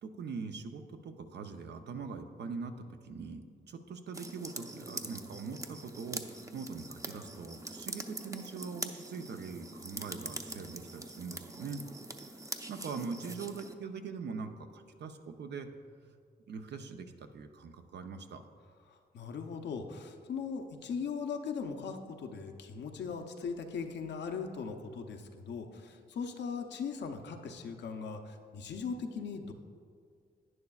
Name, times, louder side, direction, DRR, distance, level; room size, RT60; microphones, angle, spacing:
voice 1, 0.0-11.8 12.5-15.7 16.0-16.1 16.5-18.4, right 5 dB, 75° right, 6 dB, 0.7 m, -42 dB
sound 1, 4.1-13.7, right 2 dB, 20° right, 0.6 m, -44 dB
voice 2, 18.9-29.5, left 5 dB, 85° left, 5 dB, 0.7 m, -39 dB
11.0 x 9.7 x 2.4 m, 2.2 s
cardioid pair, 65°, 18 cm